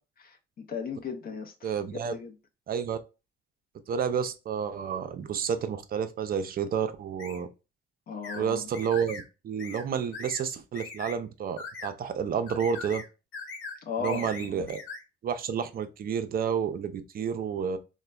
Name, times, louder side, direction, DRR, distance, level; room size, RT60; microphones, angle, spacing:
voice 1, 0.3-1.7 2.1-2.3 8.1-8.7 13.8-14.7, left 5 dB, 50° left, 0.5 m, -36 dB
voice 2, 1.6-2.1 2.7-3.0 3.9-7.5 8.3-13.0 14.0-14.8 15.2-17.8, right 7 dB, 50° right, 0.5 m, -30 dB
sound 1, 7.2-7.4 8.2-8.4 8.7-9.2 9.6-9.8 10.1-10.4 10.7-11.2 11.6-11.9 12.5-13.1 13.3-13.8 14.0-15.0, left 4 dB, 75° left, 1.0 m, -40 dB
3.1 x 2.1 x 2.2 m
cardioid pair, 90°, 20 cm